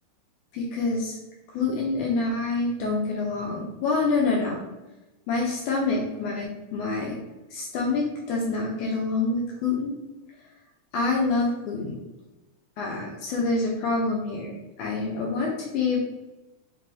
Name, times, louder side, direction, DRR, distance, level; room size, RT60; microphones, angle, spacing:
voice 1, 0.5-1.2 1.5-4.6 5.3-7.2 7.5-10.0 10.9-12.0 12.8-14.5 14.8-16.0, left 3 dB, 75° left, -2 dB, 1.8 m, -26 dB
5.0 x 3.6 x 2.7 m, 1.1 s
omnidirectional pair, 4.1 m